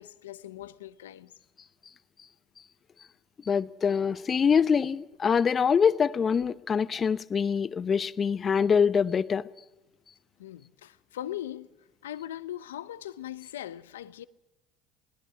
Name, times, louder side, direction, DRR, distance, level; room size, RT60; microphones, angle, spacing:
voice 1, 0.0-1.3 5.9-6.0 10.4-11.7 12.0-14.2, left 12 dB, 90° left, 0.7 m, -40 dB
voice 2, 3.5-9.5, left 6 dB, 35° left, 0.9 m, -24 dB
26.5 x 19.5 x 6.0 m
hypercardioid pair, 70°, 0 cm